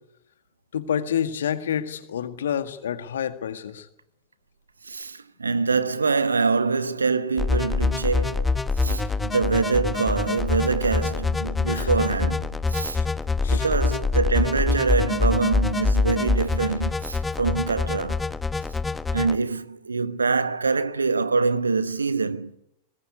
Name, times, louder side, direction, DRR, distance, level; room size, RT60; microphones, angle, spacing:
voice 1, 0.7-3.9 11.4-11.9 12.9-13.1 13.4-13.7, left 9 dB, 65° left, 1.9 m, -29 dB
voice 2, 4.8-13.0 13.5-18.2 19.1-22.6, right 4 dB, 75° right, 1.1 m, -25 dB
sound 1, 7.4-19.4, left 3 dB, 10° left, 1.2 m, -25 dB
23.5 x 21.0 x 9.7 m
figure-of-eight pair, 90°, 0 cm